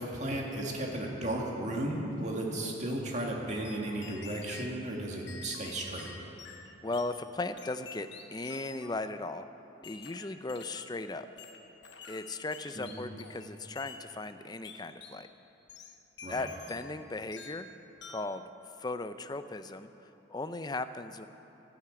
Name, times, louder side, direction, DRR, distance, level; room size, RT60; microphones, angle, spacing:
voice 1, 0.0-6.1 12.8-13.0 16.2-16.5, right 1 dB, 35° right, -1 dB, 2.0 m, -35 dB
sound 1, 3.5-4.7 5.3-7.1 7.6-9.0 9.8-10.9 11.4-13.5 13.8-14.0 14.6-15.2 15.7-17.0 17.3-17.7 18.0-18.4, left 5 dB, 60° left, 1.1 m, -49 dB
voice 2, 6.8-9.5 9.8-11.3 12.1-15.3 16.3-17.7 18.1-18.5 18.8-19.9 20.3-21.3, left 2 dB, 20° left, 10 dB, 0.5 m, -37 dB
13.0 x 11.5 x 8.7 m, 2.9 s
head